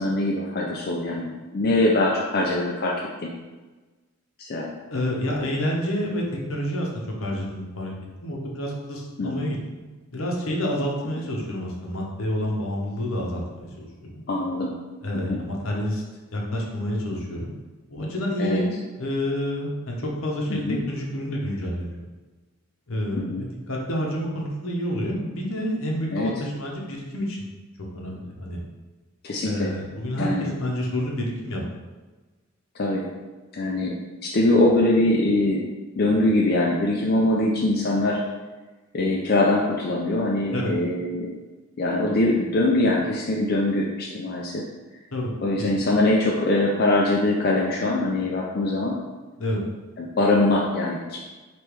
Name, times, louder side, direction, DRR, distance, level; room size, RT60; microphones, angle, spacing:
voice 1, 0.0-3.0 3.2-3.3 4.4-4.7 9.2-9.6 14.3-14.7 15.3-15.4 18.4-18.6 20.5-20.8 23.2-23.4 26.1-26.3 29.2-29.7 30.2-30.5 32.8-33.0 33.5-34.0 34.2-35.6 36.0-38.2 38.9-41.3 41.8-44.6 45.4-49.0 50.0-51.2, left 2 dB, 45° left, -3 dB, 0.4 m, -22 dB
voice 2, 4.9-6.9 7.2-7.9 8.2-9.8 10.1-14.2 15.0-16.0 16.3-17.6 17.9-22.0 22.9-27.5 27.9-28.6 29.4-31.6 40.5-40.7 45.1-45.3 45.6-45.8 49.4-49.6, equal, 70° left, -1 dB, 0.9 m, -29 dB
3.3 x 3.0 x 4.6 m, 1.3 s
head